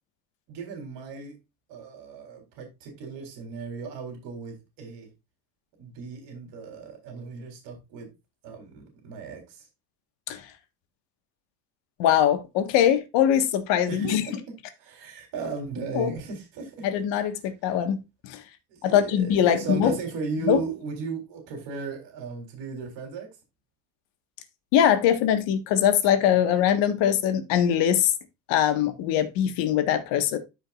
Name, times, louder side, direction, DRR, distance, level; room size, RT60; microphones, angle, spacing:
voice 1, 0.5-1.4 1.7-5.1 5.8-8.1 8.4-9.7 13.9-14.4 14.8-16.9 18.7-23.3 26.5-26.6, right 5 dB, 75° right, 3.7 m, -36 dB
voice 2, 12.0-14.2 15.9-16.1 16.8-18.0 18.2-18.4 18.8-20.0 20.4-20.6 24.7-28.1 28.5-30.4, left 10 dB, 75° left, 1.6 m, -22 dB
13.5 x 5.2 x 2.5 m
cardioid pair, 170°, 43 cm